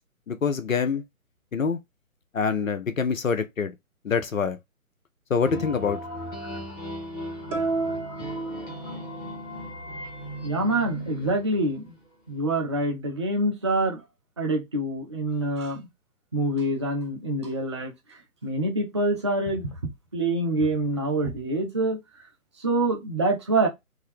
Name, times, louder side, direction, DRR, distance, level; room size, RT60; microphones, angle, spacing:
voice 1, 0.3-1.0 1.5-1.8 2.3-3.7 4.0-4.6 5.3-6.0, left 5 dB, 65° left, 0.8 m, -25 dB
sound 1, 5.4-12.0, equal, 15° left, 1.1 m, -37 dB
sound 2, 7.5-9.3, right 3 dB, 60° right, 1.3 m, -30 dB
voice 2, 10.4-11.9 12.3-14.0 14.4-15.9 16.3-17.9 18.4-19.7 20.1-22.0 22.6-23.7, right 2 dB, 20° right, 0.5 m, -26 dB
3.7 x 2.8 x 3.2 m
figure-of-eight pair, 140°, 43 cm